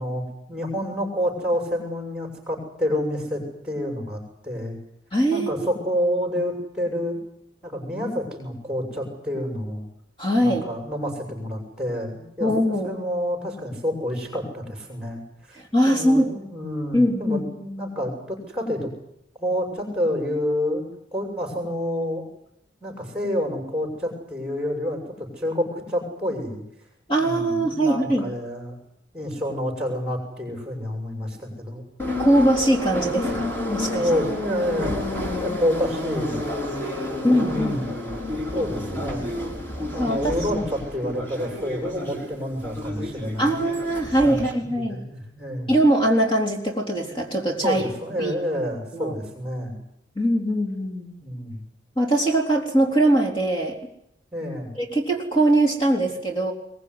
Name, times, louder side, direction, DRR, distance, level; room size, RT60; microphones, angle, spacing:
voice 1, 0.0-4.8 5.3-7.2 7.6-9.8 10.4-12.5 12.8-15.6 15.8-18.9 19.4-20.9 21.1-22.2 22.8-26.6 27.2-28.8 29.1-31.8 33.9-35.0 35.4-36.4 36.8-37.9 38.5-39.3 39.9-43.6 44.2-45.8 47.6-49.8 51.2-51.6 54.3-54.7, equal, 5° right, 1 dB, 6.9 m, -28 dB
voice 2, 5.1-5.5 10.2-10.7 12.4-12.9 15.6-16.4 16.9-17.4 27.1-28.3 32.2-34.1 37.2-37.8 40.0-40.3 43.4-45.0 45.7-47.8 48.2-48.3 48.9-49.1 50.2-51.1 52.0-53.8 54.8-56.5, right 1 dB, 25° left, 2 dB, 3.8 m, -21 dB
Subway metro underground, 32.0-44.5, left 1 dB, 10° left, 4.7 m, -30 dB
22.5 x 20.0 x 9.8 m, 0.76 s
head